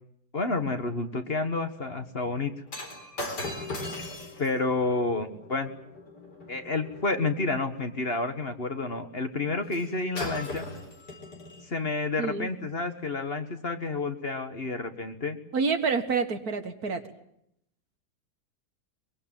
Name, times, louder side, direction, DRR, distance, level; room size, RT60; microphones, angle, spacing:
voice 1, 0.3-2.5 4.4-5.7 6.5-10.6 11.7-15.4, left 3 dB, 35° left, 8 dB, 1.6 m, -30 dB
Shatter, 2.7-7.1 9.7-9.9 10.2-11.7 12.4-12.5, left 2 dB, 85° left, 4.8 m, -39 dB
voice 2, 12.2-12.5 15.5-17.0, right 5 dB, 65° right, 9 dB, 2.2 m, -27 dB
23.5 x 22.0 x 9.0 m, 0.75 s
omnidirectional pair, 1.8 m